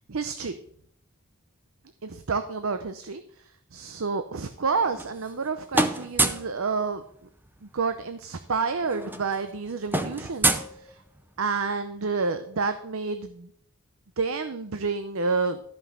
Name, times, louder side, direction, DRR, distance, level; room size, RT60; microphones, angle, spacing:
voice 1, 0.1-0.6 2.0-7.0 7.6-11.0 11.4-13.5 14.2-15.6, right 4 dB, 70° right, 9 dB, 0.7 m, -29 dB
sound 1, 4.7-5.5 5.7-6.5 7.9-8.0 8.3-8.5 8.7-11.4, right 2 dB, 10° right, 0.6 m, -27 dB
13.0 x 5.6 x 6.6 m, 0.67 s
head